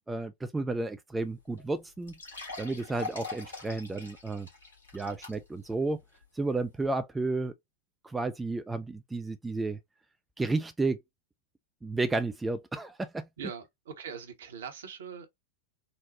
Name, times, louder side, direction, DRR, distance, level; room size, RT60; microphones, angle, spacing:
voice 1, 0.1-2.1 2.6-4.5 4.9-6.0 6.4-7.5 8.0-9.8 10.4-11.0 11.8-13.3, right 3 dB, 10° right, 0.3 m, -32 dB
sound 1, 1.2-1.3 1.6-1.7 2.1-5.7 6.1-6.2 6.8-6.9, left 3 dB, 70° left, 1.8 m, -42 dB
voice 2, 13.4-15.3, right 6 dB, 60° right, 0.8 m, -42 dB
4.0 x 2.1 x 2.9 m
figure-of-eight pair, 90°, 0 cm